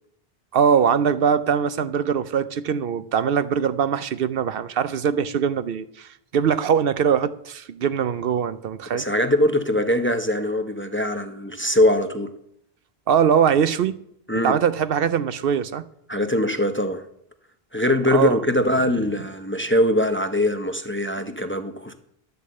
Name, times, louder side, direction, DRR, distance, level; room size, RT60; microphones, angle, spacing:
voice 1, 0.5-9.0 13.1-14.0 14.4-15.8 18.1-18.4, right 7 dB, 70° right, 0.8 m, -22 dB
voice 2, 8.9-12.3 14.3-14.5 16.1-17.0 17.7-21.9, left 1 dB, 15° left, 0.7 m, -22 dB
11.5 x 6.8 x 7.7 m
omnidirectional pair, 1.0 m